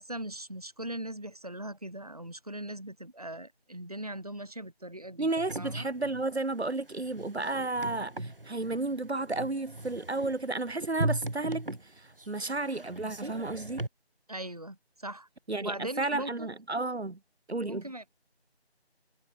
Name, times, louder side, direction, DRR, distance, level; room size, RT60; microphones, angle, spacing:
voice 1, 0.0-5.3 5.6-5.9 14.3-15.3 15.6-16.5 17.7-18.1, right 1 dB, 35° right, 1.3 m, -40 dB
voice 2, 5.2-13.8 15.5-17.2 17.5-17.8, right 2 dB, 75° right, 1.4 m, -32 dB
sound 1, 5.4-13.9, right 1 dB, 55° right, 4.2 m, -38 dB
figure-of-eight pair, 175°, 33 cm